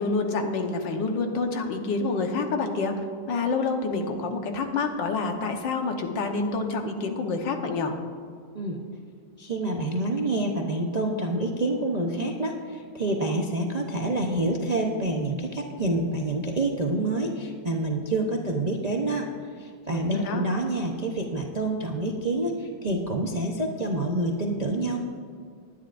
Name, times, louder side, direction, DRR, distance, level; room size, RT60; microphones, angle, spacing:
voice 1, 0.0-2.9 3.3-7.9 19.9-20.4, left 3 dB, 85° left, 4 dB, 1.8 m, -27 dB
voice 2, 9.4-19.3 19.6-25.0, right 2 dB, 45° right, 0 dB, 0.5 m, -27 dB
20.0 x 10.0 x 2.5 m, 2.2 s
omnidirectional pair, 2.0 m